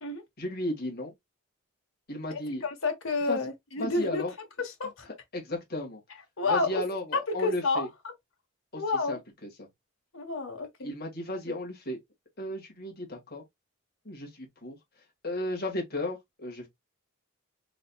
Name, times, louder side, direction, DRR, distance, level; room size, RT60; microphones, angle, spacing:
voice 1, 0.4-1.1 2.1-2.7 3.3-3.4 3.8-4.3 5.3-6.0 6.4-7.9 8.7-8.8 9.1-9.7 10.8-12.0 12.4-13.4 14.1-14.8 15.2-16.7, left 1 dB, 45° left, 1.9 m, -34 dB
voice 2, 2.3-4.2 4.6-5.0 6.4-6.8 7.3-7.9 8.8-9.2 10.1-10.9 11.5-11.6, left 3 dB, 70° left, 1.4 m, -30 dB
4.2 x 4.0 x 2.4 m
head